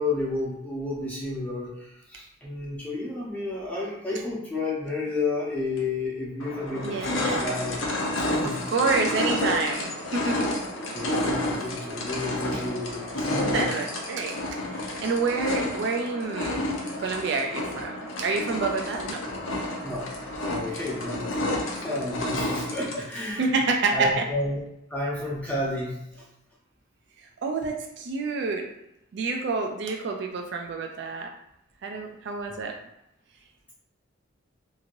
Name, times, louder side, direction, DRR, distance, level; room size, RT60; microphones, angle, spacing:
voice 1, 0.0-7.8 8.1-8.6 10.8-13.6 19.8-20.1 20.5-21.5 21.8-23.5 23.9-24.6 24.9-26.2, left 2 dB, 5° left, -6 dB, 0.8 m, -31 dB
sound 1, 5.8-5.9 6.4-23.2, left 1 dB, 75° left, 0.6 m, -30 dB
voice 2, 6.8-7.5 8.4-10.5 13.4-16.6 17.0-19.2 23.4-24.2 27.2-28.7 29.1-31.3 31.8-32.7, right 4 dB, 60° right, 3 dB, 0.3 m, -28 dB
2.9 x 2.7 x 2.6 m, 0.82 s
head